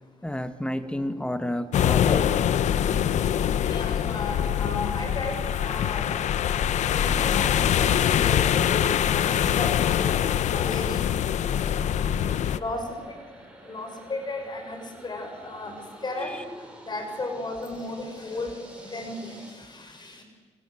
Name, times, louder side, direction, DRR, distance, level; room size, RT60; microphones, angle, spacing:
voice 1, 0.2-2.4 16.2-16.6, left 1 dB, 10° left, 10 dB, 1.7 m, -31 dB
sound 1, 0.7-19.5, right 1 dB, 10° right, 7.8 m, -49 dB
sound 2, 1.7-12.6, left 10 dB, 85° left, 1.0 m, -24 dB
voice 2, 3.7-6.1 6.9-10.1 10.5-11.1 12.4-13.2 13.6-15.7 16.0-16.4 16.9-20.2, left 2 dB, 40° left, 5 dB, 5.8 m, -34 dB
29.5 x 25.0 x 8.0 m, 1.4 s
cardioid pair, 95°, 12 cm